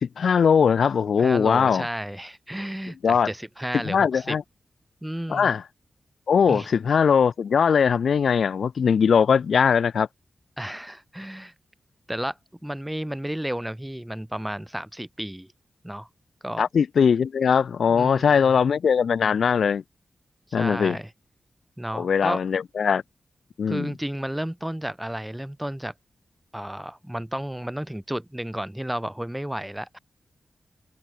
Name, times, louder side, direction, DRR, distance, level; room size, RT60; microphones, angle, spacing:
voice 1, 0.0-1.9 3.0-3.3 3.8-4.4 5.3-5.6 6.3-10.1 16.6-19.8 20.5-21.0 21.9-23.0 23.6-23.9, left 6 dB, 70° left, 1.4 m, -20 dB
voice 2, 1.2-4.4 5.0-5.5 6.5-6.7 10.6-11.5 12.1-12.4 12.6-15.5 15.8-16.1 16.4-16.6 17.9-18.5 20.5-21.1 21.8-22.4 23.7-25.9 26.5-30.0, right 1 dB, 5° right, 1.8 m, -32 dB
open air
wide cardioid pair, 150°, 0 cm